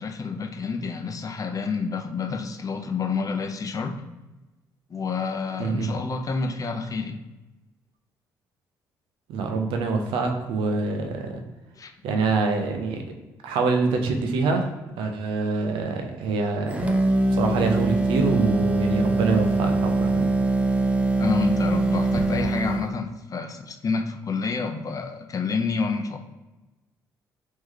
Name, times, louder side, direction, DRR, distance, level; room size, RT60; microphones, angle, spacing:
voice 1, 0.0-4.0 4.9-7.2 11.8-11.9 21.2-26.2, left 4 dB, 40° left, 6 dB, 0.6 m, -29 dB
voice 2, 5.6-5.9 9.3-11.4 12.0-13.0 13.4-14.7 15.0-16.9 17.3-20.3, right 3 dB, 75° right, 4 dB, 0.7 m, -25 dB
sound 1, 16.7-22.9, right 2 dB, 15° right, 0.7 m, -23 dB
3.2 x 3.0 x 3.7 m, 1.1 s
hypercardioid pair, 55°, 9 cm